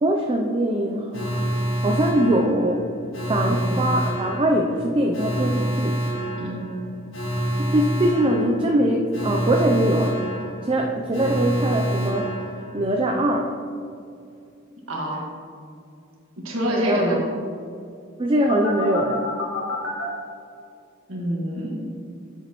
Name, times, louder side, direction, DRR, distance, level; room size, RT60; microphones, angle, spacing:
voice 1, 0.0-1.5 1.8-2.9 3.3-6.0 7.6-10.2 10.6-13.5 16.7-17.1 18.2-19.3, right 1 dB, 25° right, 1 dB, 0.4 m, -22 dB
Alarm, 1.1-13.0 18.5-20.1, equal, 90° left, 1.5 m, -27 dB
voice 2, 6.4-6.7 14.9-15.2 16.4-17.2 21.1-21.8, equal, 80° right, -2 dB, 1.6 m, -26 dB
8.1 x 6.9 x 3.0 m, 2.4 s
head